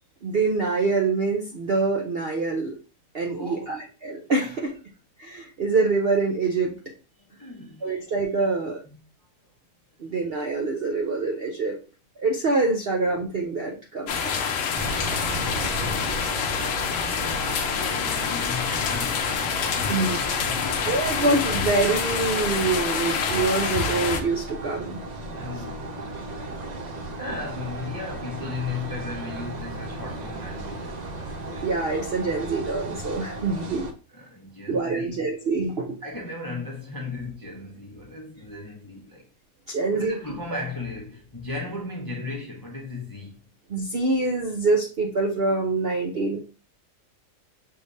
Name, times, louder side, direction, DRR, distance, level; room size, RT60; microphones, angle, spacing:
voice 1, 0.2-2.7 3.1-4.5 5.2-6.7 7.8-8.8 10.0-11.8 12.2-14.6 19.9-20.2 20.9-25.0 31.6-33.9 34.7-36.0 39.7-40.2 43.7-46.4, right 3 dB, 55° right, 0.7 m, -25 dB
voice 2, 3.2-3.8 4.4-4.6 7.2-7.9 8.8-9.0 16.9-21.2 25.3-25.9 27.2-31.3 34.1-35.2 36.0-39.3 39.9-43.4, left 3 dB, 20° left, 0.6 m, -36 dB
sound 1, 14.1-24.2, left 6 dB, 60° left, 0.9 m, -27 dB
sound 2, 14.7-33.9, right 2 dB, 80° right, 0.3 m, -35 dB
5.7 x 3.2 x 2.7 m
omnidirectional pair, 1.7 m